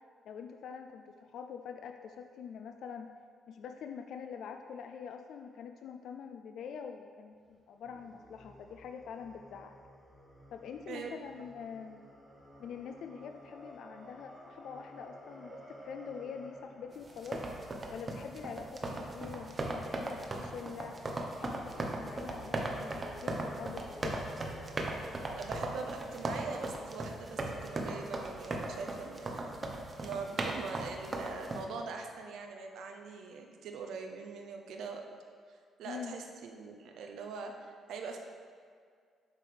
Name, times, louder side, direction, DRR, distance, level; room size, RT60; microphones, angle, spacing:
voice 1, 0.3-3.2 3.5-9.7 10.5-12.0 12.6-17.4 17.9-21.0 21.4-24.3 35.9-36.2, left 7 dB, 70° left, 6 dB, 0.3 m, -45 dB
sound 1, 7.3-19.3 21.2-26.5, equal, ahead, 1.2 m, -54 dB
sound 2, 17.1-31.6, right 2 dB, 30° right, 0.9 m, -38 dB
voice 2, 25.4-29.5 30.0-35.1 35.5-38.2, right 4 dB, 80° right, 3 dB, 0.6 m, -42 dB
8.1 x 6.5 x 3.4 m, 2.1 s
cardioid pair, 90°, 0 cm